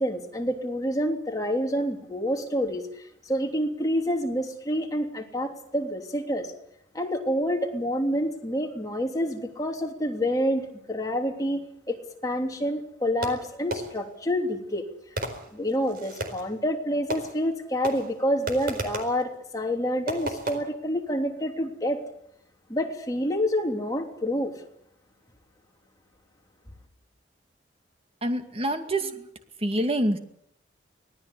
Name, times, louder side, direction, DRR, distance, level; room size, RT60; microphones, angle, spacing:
voice 1, 0.0-2.8 3.3-6.5 6.9-10.6 10.9-11.6 11.9-12.0 12.2-14.8 15.5-22.0 22.7-24.5, equal, 20° left, 2 dB, 3.2 m, -27 dB
Fireworks, 13.2-14.2 15.2-16.5 17.1-17.6 17.8-19.2 20.1-20.6, right 1 dB, 50° right, 4.3 m, -34 dB
voice 2, 28.2-29.3 29.6-30.2, right 1 dB, 30° right, 7 dB, 2.3 m, -26 dB
25.0 x 18.0 x 8.4 m, 0.74 s
head